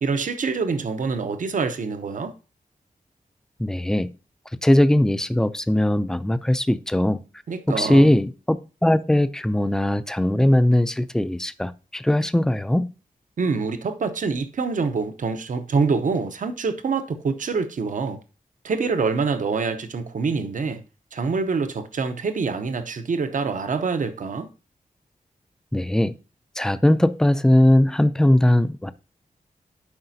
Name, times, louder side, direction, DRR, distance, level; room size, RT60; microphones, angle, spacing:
voice 1, 0.0-2.3 7.5-8.1 13.4-18.2 18.6-20.8 21.1-24.5, right 4 dB, 65° right, 0.7 m, -25 dB
voice 2, 3.6-4.1 4.6-7.2 7.7-12.9 25.7-26.1 26.6-28.9, left 1 dB, 5° left, 0.4 m, -19 dB
11.5 x 4.9 x 2.7 m
wide cardioid pair, 140°, 14 cm